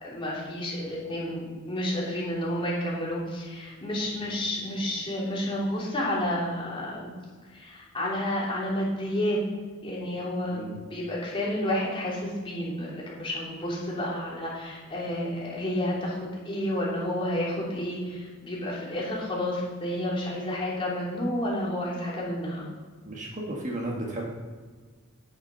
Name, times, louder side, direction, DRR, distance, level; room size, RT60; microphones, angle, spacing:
voice 1, 0.0-7.1 7.5-9.4 9.8-22.6, left 1 dB, 25° left, -5 dB, 3.1 m, -30 dB
voice 2, 23.1-24.2, right 1 dB, 35° right, -1 dB, 1.6 m, -34 dB
10.0 x 7.0 x 5.7 m, 1.6 s
head